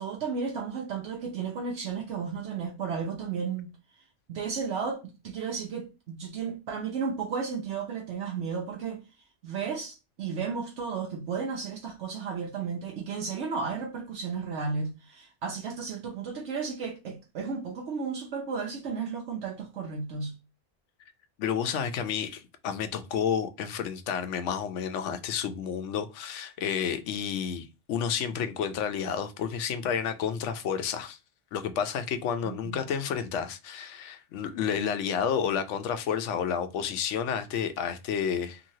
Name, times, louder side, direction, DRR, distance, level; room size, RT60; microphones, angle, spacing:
voice 1, 0.0-3.7 4.3-9.0 9.4-20.3 32.4-32.8, right 5 dB, 75° right, 1.0 m, -33 dB
voice 2, 21.4-31.2 31.5-38.6, left 7 dB, 85° left, 0.9 m, -30 dB
2.9 x 2.7 x 2.7 m
omnidirectional pair, 1.2 m